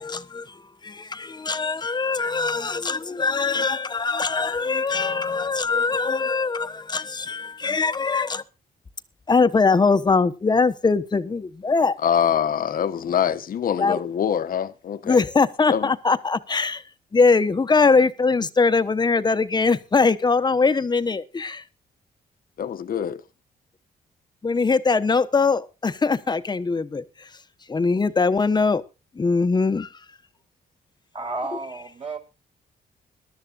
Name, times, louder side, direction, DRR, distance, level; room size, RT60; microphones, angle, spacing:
voice 1, 0.0-8.4 9.3-12.0 13.8-14.0 15.0-16.8 17.1-21.6 24.4-27.4 27.7-28.8 29.1-30.2, left 4 dB, 25° left, 1.0 m, -22 dB
voice 2, 12.0-15.2 15.7-15.9 22.6-23.2, left 8 dB, 60° left, 1.1 m, -24 dB
voice 3, 31.1-32.2, right 3 dB, 40° right, 4.6 m, -32 dB
21.5 x 12.5 x 2.5 m
cardioid pair, 115°, 17 cm